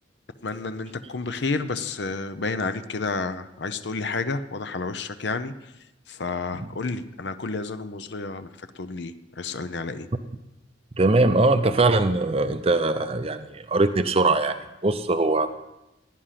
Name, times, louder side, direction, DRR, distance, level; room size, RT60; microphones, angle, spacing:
voice 1, 0.4-5.5 6.1-8.5 8.8-10.1, left 3 dB, 60° left, 11 dB, 0.6 m, -30 dB
voice 2, 11.0-14.6 14.8-15.5, right 2 dB, 30° right, 8 dB, 0.6 m, -21 dB
16.0 x 10.0 x 5.8 m, 0.96 s
head